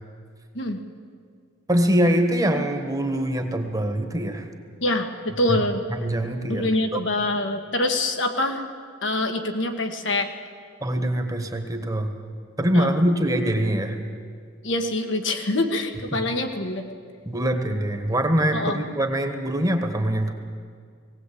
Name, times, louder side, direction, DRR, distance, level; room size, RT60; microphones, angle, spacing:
voice 1, 1.7-4.5 5.5-7.0 10.8-12.1 12.6-14.0 16.1-16.2 17.2-20.3, right 1 dB, 20° right, 6 dB, 1.4 m, -24 dB
voice 2, 4.8-5.8 6.5-8.6 9.0-10.3 12.7-12.9 14.6-16.8 18.5-18.8, left 2 dB, 65° left, 5 dB, 1.5 m, -25 dB
19.0 x 17.5 x 8.5 m, 2.1 s
head